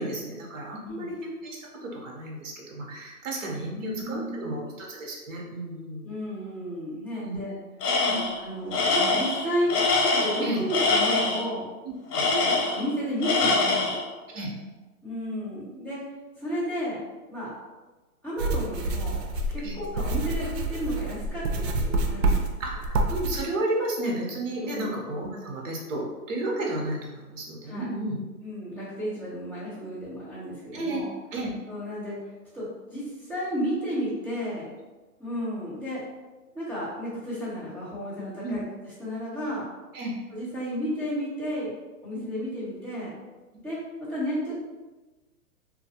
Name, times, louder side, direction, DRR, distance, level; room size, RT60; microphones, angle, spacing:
voice 1, 0.0-6.1 7.2-7.4 8.1-8.2 10.4-10.6 11.8-12.2 14.3-14.5 19.6-19.8 22.6-28.2 30.7-31.0 31.3-31.5 38.4-38.6 39.9-40.1 42.1-42.2, right 1 dB, 55° right, -1 dB, 0.8 m, -32 dB
voice 2, 0.8-1.1 3.6-4.7 6.0-7.6 8.4-9.7 10.1-11.7 12.2-14.0 15.0-16.0 16.4-17.0 17.3-17.5 18.2-19.2 19.5-22.5 24.6-24.9 27.6-27.9 28.4-31.1 31.6-32.2 32.5-34.7 35.2-36.0 36.5-38.6 39.0-39.6 40.3-41.7 42.0-43.2 43.6-44.6, equal, ahead, -19 dB, 1.0 m, -32 dB
Tools, 7.8-8.4 8.7-11.4 12.1-12.9 13.2-14.0, left 3 dB, 80° left, 0.8 m, -24 dB
sound 1, 18.4-23.4, right 2 dB, 90° right, 0.6 m, -27 dB
2.5 x 2.2 x 2.7 m, 1.2 s
hypercardioid pair, 165°, 46 cm